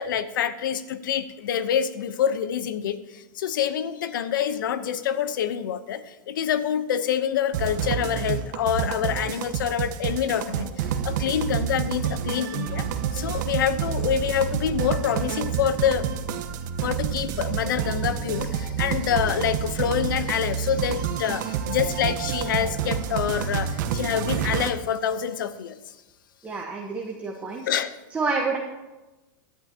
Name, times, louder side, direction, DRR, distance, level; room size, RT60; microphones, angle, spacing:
voice 1, 0.0-16.1 16.8-25.8 27.7-28.0, left 9 dB, 85° left, 13 dB, 0.8 m, -26 dB
sound 1, 7.5-24.7, right 8 dB, 65° right, 1.1 m, -28 dB
voice 2, 26.4-27.6 28.1-28.6, right 4 dB, 15° right, 0 dB, 1.2 m, -28 dB
16.0 x 11.0 x 2.9 m, 1.1 s
supercardioid pair, 145°, 11 cm